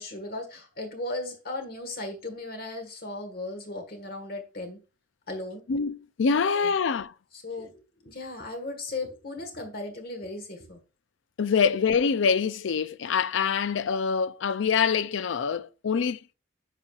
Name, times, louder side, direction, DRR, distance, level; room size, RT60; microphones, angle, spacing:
voice 1, 0.0-4.8 5.3-5.6 6.4-6.7 7.3-10.8, left 2 dB, 50° left, 1.4 m, -36 dB
voice 2, 5.7-7.1 11.4-16.2, left 6 dB, 75° left, 0.4 m, -25 dB
9.8 x 5.6 x 2.4 m
head